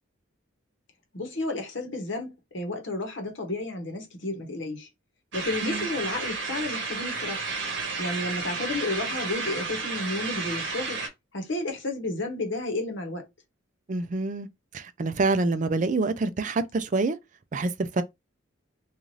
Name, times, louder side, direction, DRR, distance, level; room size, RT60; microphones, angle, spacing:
voice 1, 1.1-4.9 5.3-7.5 8.0-11.0 11.3-13.3, left 2 dB, 60° left, 0.9 m, -32 dB
sound 1, 5.3-11.1, right 4 dB, 55° right, 1.0 m, -32 dB
voice 2, 13.9-14.5 14.7-17.2 17.5-18.0, right 3 dB, 35° right, 0.4 m, -26 dB
2.6 x 2.4 x 3.1 m
head